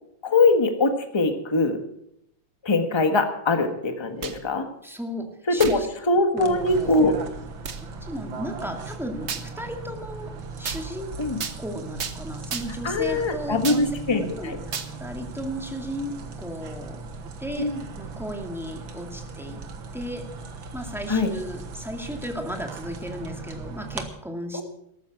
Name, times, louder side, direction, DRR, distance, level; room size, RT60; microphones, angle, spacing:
voice 1, 0.2-1.8 2.6-4.7 5.5-5.8 6.1-7.1 11.2-11.4 12.8-14.6 17.6-17.8 21.1-21.3 24.5-24.6, left 3 dB, 15° left, 5 dB, 1.3 m, -22 dB
sound 1, 4.0-4.5 5.6-5.8 6.5-6.6 7.7-7.8 9.3-9.5 10.7-10.8 11.4-11.6 12.0-12.2 12.5-12.9 13.6-13.9 14.7-14.9, right 6 dB, 45° right, 1.0 m, -32 dB
voice 2, 4.8-5.9 6.3-6.9 7.8-11.2 11.6-13.9 14.3-14.6 15.0-17.0 17.4-19.6 19.9-20.2 20.7-24.6, equal, ahead, 2 dB, 2.0 m, -35 dB
sound 2, 6.4-24.1, right 4 dB, 65° right, 2.1 m, -38 dB
13.5 x 13.5 x 6.0 m, 0.75 s
omnidirectional pair, 2.3 m